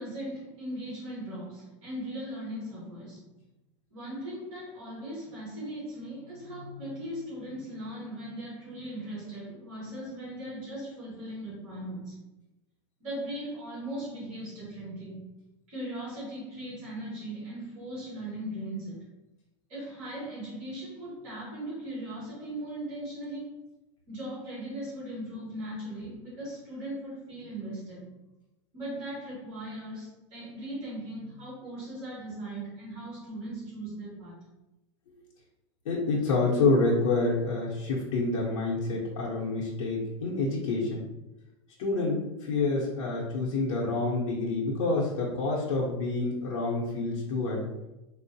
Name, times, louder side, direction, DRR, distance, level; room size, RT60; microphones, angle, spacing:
voice 1, 0.0-3.2 3.9-12.1 13.0-15.2 15.7-19.1 19.7-23.5 24.1-28.1 28.7-34.3, right 1 dB, 35° right, -8 dB, 1.4 m, -38 dB
voice 2, 35.9-41.1 41.8-47.7, left 3 dB, 80° left, -6 dB, 0.8 m, -28 dB
3.7 x 2.0 x 2.7 m, 0.98 s
supercardioid pair, 170°, 17 cm